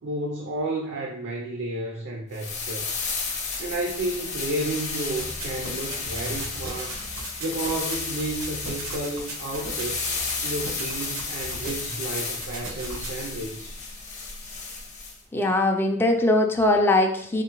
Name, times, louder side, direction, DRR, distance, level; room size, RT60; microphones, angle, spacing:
voice 1, 0.0-3.0 3.6-7.0 7.4-10.1 10.4-13.8, right 2 dB, 60° right, 0 dB, 0.6 m, -31 dB
sound 1, 2.3-15.2, left 4 dB, 35° left, 0.8 m, -33 dB
sound 2, 5.2-13.1, right 2 dB, 85° right, 1.0 m, -38 dB
voice 2, 15.3-17.4, left 2 dB, 10° left, 3 dB, 0.4 m, -21 dB
4.0 x 3.7 x 3.0 m, 0.66 s
head